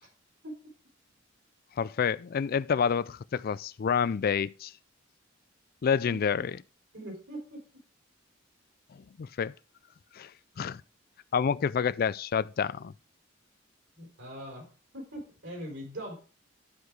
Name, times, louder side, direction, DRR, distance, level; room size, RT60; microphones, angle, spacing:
voice 1, 1.8-4.7 5.8-6.6 8.9-9.5 10.1-10.3 10.6-10.8 11.3-12.9, left 6 dB, 50° left, 0.4 m, -28 dB
voice 2, 6.1-6.4 6.9-7.6 14.0-14.7 14.9-16.1, equal, 65° right, 4.0 m, -41 dB
11.5 x 4.7 x 4.8 m
head